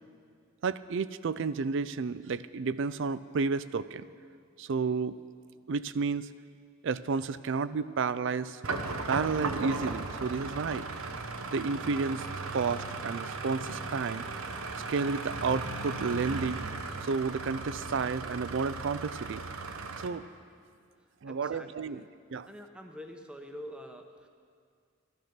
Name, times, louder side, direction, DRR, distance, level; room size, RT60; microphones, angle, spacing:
voice 1, 0.6-4.1 4.6-5.2 5.7-6.3 6.8-8.6 9.1-10.9 11.5-12.2 12.5-14.2 14.9-16.6 17.0-19.4 20.0-20.3 21.2-22.0 22.3-22.5, right 4 dB, 55° right, 16 dB, 0.4 m, -31 dB
sound 1, 8.6-20.1, right 3 dB, 70° right, 0.9 m, -37 dB
voice 2, 21.2-22.1 22.5-24.3, equal, 5° right, 4 dB, 0.8 m, -46 dB
13.0 x 12.0 x 5.9 m, 2.2 s
head